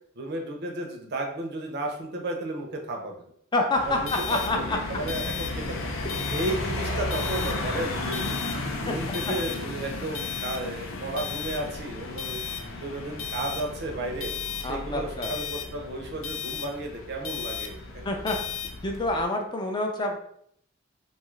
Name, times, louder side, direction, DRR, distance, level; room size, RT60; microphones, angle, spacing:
voice 1, 0.2-3.3 3.9-5.9 6.3-12.4 12.7-14.3 14.6-17.7, right 2 dB, 55° right, 2 dB, 0.5 m, -33 dB
voice 2, 3.5-4.8 8.9-9.0 9.2-9.3 14.6-15.3 18.0-18.4 18.8-20.2, left 2 dB, 20° left, 2 dB, 0.4 m, -27 dB
sound 1, 3.7-19.2, left 4 dB, 80° left, 0.5 m, -33 dB
2.7 x 2.3 x 3.0 m, 0.67 s
head